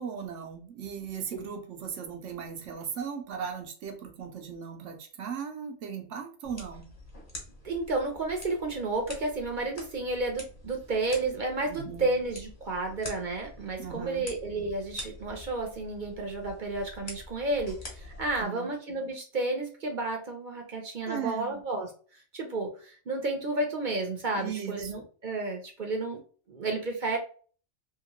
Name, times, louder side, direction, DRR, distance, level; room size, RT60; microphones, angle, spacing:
voice 1, 0.0-6.8 11.6-12.1 13.8-14.3 18.4-18.7 21.1-21.6 24.3-24.9, right 7 dB, 80° right, 4 dB, 1.0 m, -37 dB
sound 1, 6.4-18.4, left 1 dB, 35° left, 1.2 m, -46 dB
voice 2, 7.6-21.9 22.3-26.2 26.5-27.2, right 2 dB, 50° right, 2 dB, 0.7 m, -31 dB
2.8 x 2.8 x 2.9 m, 0.42 s
omnidirectional pair, 1.2 m